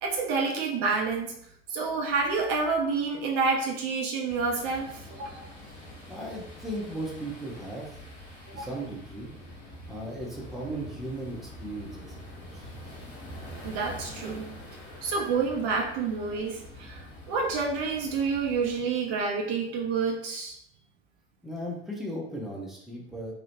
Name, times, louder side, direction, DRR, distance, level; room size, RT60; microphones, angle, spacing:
voice 1, 0.0-1.3 1.7-5.5 8.5-8.7 13.6-14.5 15.0-20.6, right 4 dB, 50° right, 1 dB, 0.5 m, -29 dB
sound 1, 4.3-18.8, left 1 dB, 80° left, 0.9 m, -45 dB
voice 2, 6.1-7.9 8.5-9.3 9.9-12.7 21.4-23.3, right 1 dB, ahead, -3 dB, 0.6 m, -37 dB
2.9 x 2.0 x 2.9 m, 0.70 s
figure-of-eight pair, 70°, 32 cm